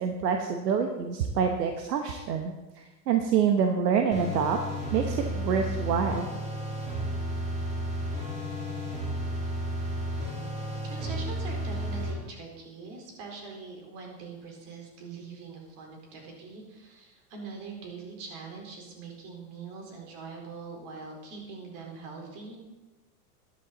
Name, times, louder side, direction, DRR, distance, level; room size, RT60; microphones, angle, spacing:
voice 1, 0.0-4.6 4.9-6.3, right 7 dB, 80° right, 5 dB, 1.2 m, -27 dB
sound 1, 4.1-12.1, equal, 15° right, 3.4 m, -32 dB
voice 2, 10.8-22.6, right 4 dB, 55° right, 0 dB, 4.2 m, -43 dB
13.0 x 11.0 x 4.0 m, 1.2 s
hypercardioid pair, 115°, 48 cm